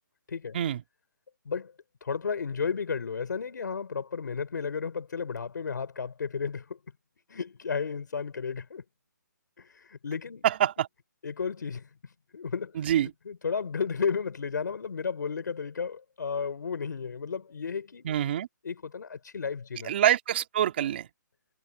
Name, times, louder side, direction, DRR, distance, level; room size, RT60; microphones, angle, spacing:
voice 1, 2.0-6.8 7.3-8.8 9.6-10.4 11.2-11.9 12.3-12.8 13.3-18.0 18.6-19.9, left 5 dB, 70° left, 4.4 m, -33 dB
voice 2, 10.4-10.9 12.8-13.1 18.0-18.5 19.8-21.1, right 11 dB, 35° right, 2.8 m, -25 dB
hypercardioid pair, 170°, 10 cm